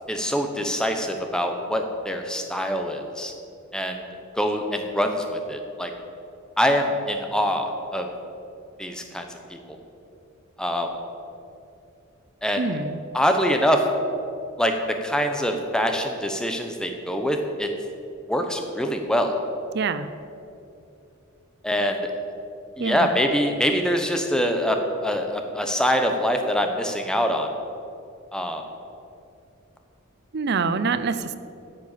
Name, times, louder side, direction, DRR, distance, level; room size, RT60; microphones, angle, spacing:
voice 1, 0.1-3.3 3.7-4.0 4.4-5.9 6.6-7.6 7.9-8.1 8.8-9.2 9.5-9.6 10.6-10.9 12.4-12.7 13.1-13.8 14.6-14.7 15.0-17.7 18.3-19.3 21.6-22.0 22.8-27.5 28.3-28.6, equal, 5° left, 4 dB, 0.9 m, -24 dB
voice 2, 12.6-13.0 19.7-20.1 22.8-23.1 30.3-31.4, right 4 dB, 50° right, 12 dB, 0.5 m, -25 dB
10.0 x 6.8 x 8.4 m, 2.7 s
head